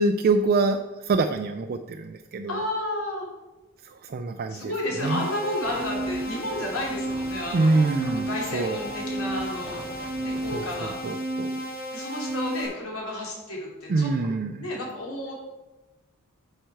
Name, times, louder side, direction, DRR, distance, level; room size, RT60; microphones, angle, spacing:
voice 1, 0.0-2.6 3.8-4.7 5.0-5.3 7.5-8.8 10.5-11.6 13.9-14.7, right 3 dB, 45° right, 6 dB, 0.4 m, -25 dB
voice 2, 2.5-3.3 4.5-9.8 10.2-11.0 11.9-14.1 14.6-15.4, left 1 dB, 80° left, -2 dB, 2.7 m, -32 dB
sound 1, 5.0-12.7, right 1 dB, 50° left, 2.5 m, -32 dB
sound 2, 5.6-11.0, right 1 dB, 5° right, 0.9 m, -44 dB
9.1 x 5.7 x 4.5 m, 1.1 s
head